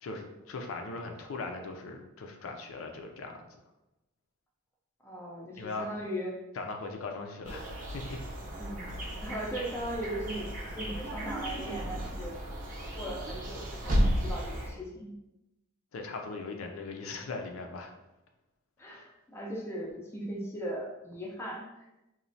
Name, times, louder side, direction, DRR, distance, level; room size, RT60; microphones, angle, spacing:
voice 1, 0.0-3.5 5.5-5.9 6.6-8.2 15.9-17.9, left 3 dB, 85° left, 3 dB, 0.4 m, -39 dB
voice 2, 5.0-6.3 8.5-10.5 10.7-12.3 13.0-15.1 18.8-21.8, right 1 dB, 10° left, -2 dB, 0.4 m, -38 dB
sound 1, 7.4-14.7, equal, 40° right, 0.5 m, -34 dB
3.0 x 2.1 x 2.6 m, 0.95 s
head